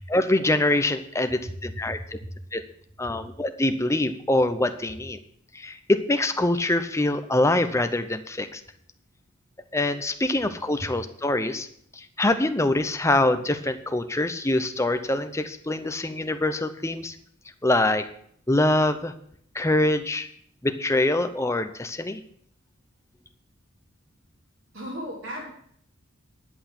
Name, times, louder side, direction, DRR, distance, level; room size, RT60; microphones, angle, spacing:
voice 1, 0.0-2.0 2.5-2.6 3.0-5.2 5.5-8.6 9.7-11.7 11.9-17.2 17.6-18.1 18.5-19.1 19.5-20.3 20.6-22.2, left 1 dB, 15° left, 9 dB, 0.7 m, -24 dB
voice 2, 1.6-2.3 10.8-10.9 24.7-25.5, equal, 70° right, -3 dB, 3.4 m, -36 dB
11.0 x 8.1 x 6.0 m, 0.65 s
head